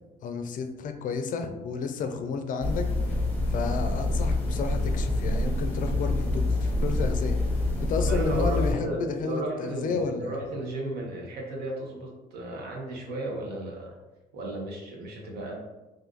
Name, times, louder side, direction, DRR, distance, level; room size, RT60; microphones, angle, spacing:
voice 1, 0.2-2.9 3.5-7.4 7.8-10.4, left 5 dB, 50° left, 6 dB, 0.4 m, -31 dB
sound 1, 2.6-8.7, left 2 dB, 10° left, 0.8 m, -26 dB
voice 2, 8.0-14.0 14.3-15.6, right 1 dB, 70° right, -1 dB, 0.9 m, -34 dB
2.6 x 2.5 x 3.7 m, 1.1 s
cardioid pair, 110°, 17 cm